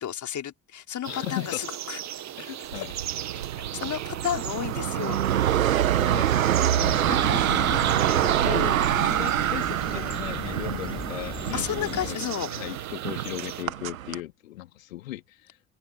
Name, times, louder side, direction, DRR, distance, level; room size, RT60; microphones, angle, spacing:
voice 1, 0.0-2.0 3.7-5.2 11.5-12.5, left 10 dB, 45° left, 4.3 m, -32 dB
sound 1, 1.0-13.6, right 11 dB, 40° right, 1.4 m, -37 dB
voice 2, 1.1-1.7 2.4-2.9 6.0-15.6, left 16 dB, 75° left, 4.1 m, -37 dB
sound 2, 2.7-14.2, right 11 dB, 80° right, 1.6 m, -26 dB
sound 3, 6.7-12.1, left 3 dB, 10° left, 1.9 m, -38 dB
figure-of-eight pair, 50°, 40 cm